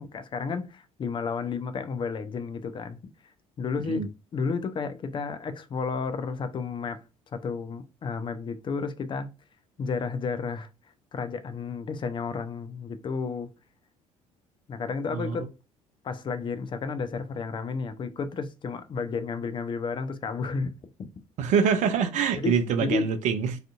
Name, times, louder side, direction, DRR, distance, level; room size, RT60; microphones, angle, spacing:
voice 1, 0.0-3.0 3.6-4.1 4.3-7.0 7.3-9.3 9.8-10.7 11.1-13.5 14.7-15.5 16.0-20.7 21.0-21.1 22.4-23.1, left 5 dB, 25° left, 0.4 m, -32 dB
voice 2, 21.4-23.6, right 7 dB, 45° right, 0.4 m, -25 dB
2.5 x 2.4 x 2.4 m
figure-of-eight pair, 50°, 18 cm